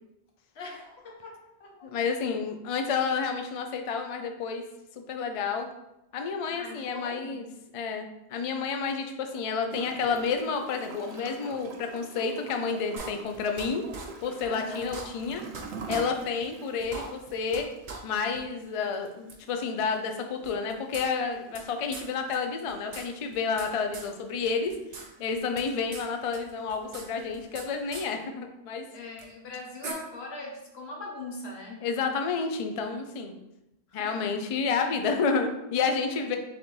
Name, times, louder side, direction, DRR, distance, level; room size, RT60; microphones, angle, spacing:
voice 1, 0.5-2.0 6.5-7.4 14.4-14.9 28.9-31.9 33.9-34.5 36.1-36.3, left 2 dB, 80° left, 0 dB, 1.1 m, -41 dB
voice 2, 1.9-4.6 5.1-5.7 6.1-7.5 7.7-13.8 14.2-15.4 15.9-17.7 18.0-24.7 25.2-28.9 31.8-33.3 33.9-36.4, left 5 dB, 60° left, 5 dB, 0.3 m, -30 dB
Gurgling / Toilet flush, 9.7-28.2, right 3 dB, 85° right, 0.8 m, -47 dB
sound 1, 13.0-13.7 13.9-14.1 14.4-14.5 14.8-15.6 15.9-16.0 16.4-16.5 16.8-17.6 17.9-18.0 18.3-18.4 19.3-19.4 20.4-21.6 21.9-22.1 22.3-22.4 22.7-23.7 23.9-24.1 24.4-25.1 25.3-26.1 26.3-27.6 27.9-28.0 29.2-29.3 29.8-29.9, right 3 dB, 45° right, 0.6 m, -40 dB
3.9 x 3.4 x 3.1 m, 0.89 s
omnidirectional pair, 1.1 m